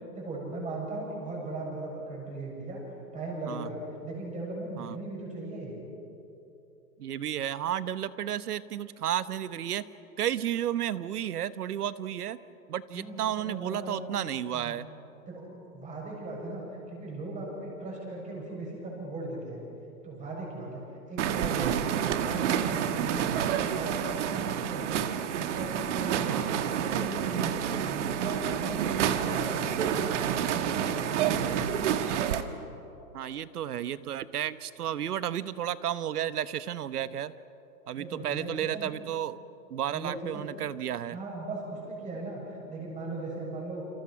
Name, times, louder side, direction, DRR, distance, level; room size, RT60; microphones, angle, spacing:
voice 1, 0.1-2.8 3.1-5.7 12.9-14.0 14.5-14.8 15.3-19.6 20.0-23.4 23.7-25.0 25.3-30.2 30.5-31.8 38.0-38.9 39.9-40.5 41.1-43.8, right 2 dB, 15° right, -2 dB, 7.2 m, -38 dB
voice 2, 7.0-9.8 10.2-12.4 12.7-14.9 26.3-26.5 33.1-37.3 37.9-39.4 39.7-41.2, right 10 dB, 75° right, 15 dB, 1.1 m, -32 dB
sound 1, 21.2-32.4, right 9 dB, 50° right, 1.6 m, -29 dB
28.5 x 27.0 x 5.9 m, 2.9 s
hypercardioid pair, 150°, 46 cm